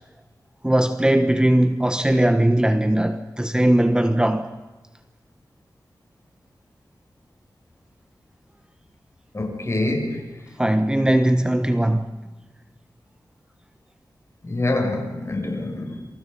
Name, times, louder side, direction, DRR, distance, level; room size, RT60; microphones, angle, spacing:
voice 1, 0.6-4.5 10.6-12.1, right 1 dB, 10° right, 1.3 m, -19 dB
voice 2, 9.3-10.2 14.4-16.0, left 2 dB, 40° left, 6.9 m, -25 dB
27.5 x 27.5 x 5.5 m
wide cardioid pair, 75°, 8 cm